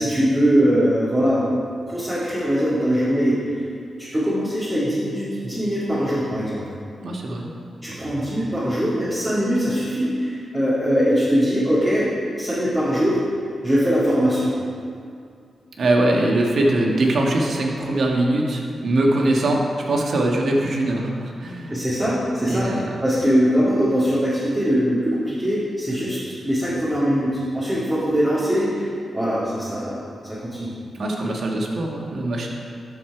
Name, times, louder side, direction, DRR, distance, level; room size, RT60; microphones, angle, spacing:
voice 1, 0.0-1.4 1.9-3.6 4.0-6.6 7.8-12.1 12.4-13.2 13.6-14.5 21.7-30.0 30.3-30.7, equal, 15° right, -12 dB, 2.3 m, -21 dB
voice 2, 7.0-7.5 15.8-21.8 22.5-22.9 30.9-32.5, right 1 dB, 65° right, -1 dB, 1.4 m, -22 dB
12.5 x 4.6 x 4.8 m, 2.3 s
cardioid pair, 75°, 0 cm